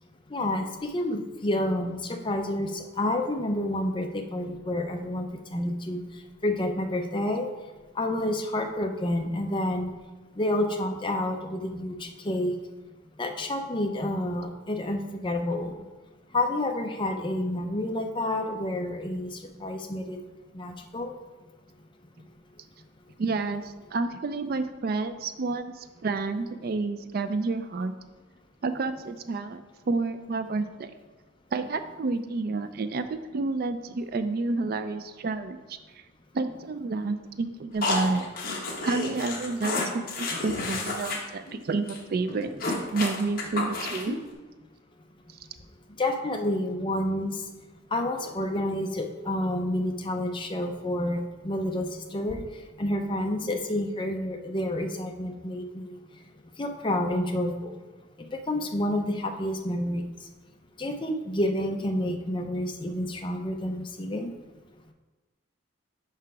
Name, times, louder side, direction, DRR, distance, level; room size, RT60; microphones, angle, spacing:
voice 1, 0.3-6.0 6.4-7.5 8.0-9.9 10.4-12.6 13.2-15.8 16.3-20.2 20.5-21.1 46.0-47.4 47.9-52.4 52.8-56.0 56.6-57.8 58.2-60.0 60.8-64.3, left 1 dB, 25° left, 4 dB, 0.5 m, -29 dB
voice 2, 23.2-28.0 28.6-30.9 31.5-35.8 36.3-38.3 38.8-42.5 42.9-44.1, right 3 dB, 50° right, 10 dB, 0.4 m, -30 dB
sound 1, 37.8-41.2 41.5-41.6 41.9-42.0 42.3-44.2, left 2 dB, 45° left, 1.2 m, -31 dB
5.7 x 5.6 x 4.8 m, 1.2 s
head